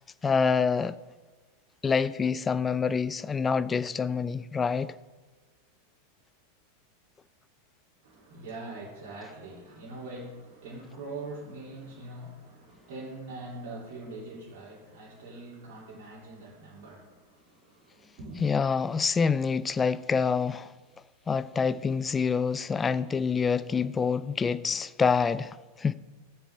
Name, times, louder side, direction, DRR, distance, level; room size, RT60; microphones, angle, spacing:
voice 1, 0.2-1.0 1.8-4.9 18.4-20.7 21.3-25.9, left 5 dB, 15° left, 0.4 m, -26 dB
voice 2, 8.0-18.5, right 2 dB, 50° right, 2.9 m, -43 dB
16.5 x 7.1 x 3.5 m
figure-of-eight pair, 90°, 0 cm